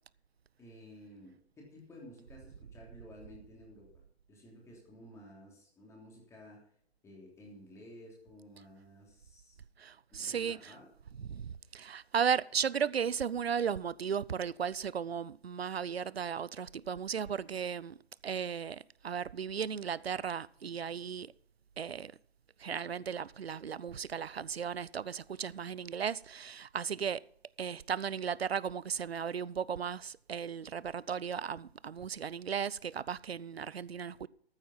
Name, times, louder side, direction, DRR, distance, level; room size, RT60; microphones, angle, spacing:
voice 1, 0.6-3.9 4.3-6.6 7.0-9.6 10.1-10.9, equal, 10° left, 3.3 m, -53 dB
voice 2, 9.8-10.7 11.2-18.0 18.2-21.3 21.8-22.1 22.6-27.2 27.6-34.3, right 7 dB, 70° right, 0.6 m, -35 dB
14.0 x 8.8 x 5.5 m
figure-of-eight pair, 130°, 32 cm